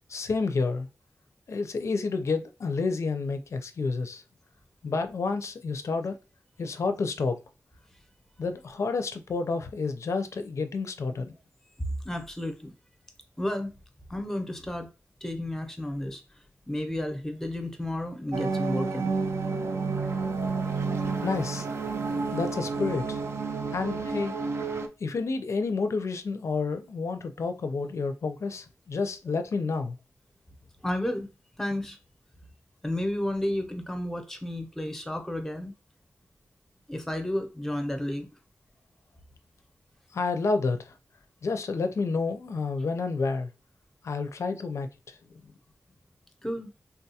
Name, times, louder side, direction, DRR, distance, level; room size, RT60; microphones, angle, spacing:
voice 1, 0.1-0.9 1.5-4.2 4.8-6.2 6.6-7.4 8.4-11.3 20.6-20.7 21.2-21.7 22.3-23.2 23.7-24.4 25.0-30.0 40.1-40.9 41.4-43.5 44.0-45.2 45.4-45.5, left 4 dB, 70° left, 0.4 m, -29 dB
voice 2, 11.8-12.7 13.4-13.8 14.1-14.9 15.2-16.2 16.7-19.1 30.8-31.3 31.6-32.0 32.8-35.7 36.9-38.3 46.4-46.7, left 1 dB, 10° left, 0.6 m, -32 dB
sound 1, 18.3-24.9, right 4 dB, 60° right, 0.4 m, -30 dB
3.5 x 2.3 x 2.7 m
wide cardioid pair, 125°, 5 cm